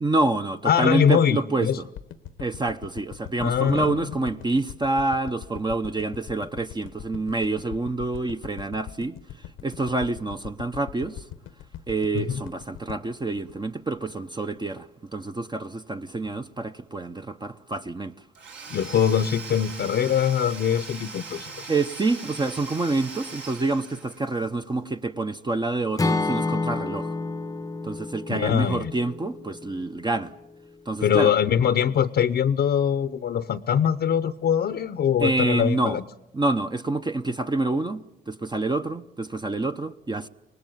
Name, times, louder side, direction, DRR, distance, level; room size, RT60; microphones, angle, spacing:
voice 1, 0.0-1.9 2.4-11.3 11.9-18.1 21.7-27.2 27.8-30.3 30.9-31.3 35.2-36.0 36.3-40.3, right 2 dB, 20° right, 0.8 m, -27 dB
voice 2, 0.6-1.8 3.4-4.0 12.1-12.4 18.7-21.7 28.3-28.9 31.0-36.0, left 8 dB, 60° left, 0.8 m, -23 dB
sound 1, 2.0-14.3 14.7-14.8, left 11 dB, 85° left, 1.1 m, -41 dB
Domestic sounds home sounds / Tools, 18.3-24.5, right 4 dB, 65° right, 4.1 m, -40 dB
Acoustic guitar / Strum, 26.0-30.1, left 3 dB, 15° left, 0.8 m, -29 dB
25.0 x 19.5 x 9.2 m
cardioid pair, 90°, 20 cm